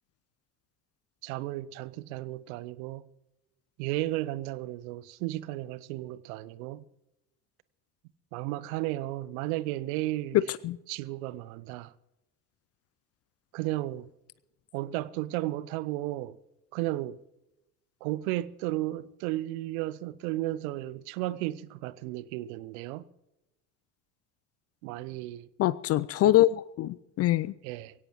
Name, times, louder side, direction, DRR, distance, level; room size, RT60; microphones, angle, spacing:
voice 1, 1.2-3.0 3.8-6.8 8.3-10.4 10.9-11.9 13.5-14.1 14.7-16.4 16.7-17.2 18.0-23.0 24.8-25.5 26.2-26.4 27.6-27.9, right 16 dB, 60° right, 0.8 m, -34 dB
voice 2, 10.3-10.8 25.6-27.5, left 14 dB, 35° left, 0.4 m, -24 dB
22.0 x 17.0 x 3.0 m
figure-of-eight pair, 55°, 48 cm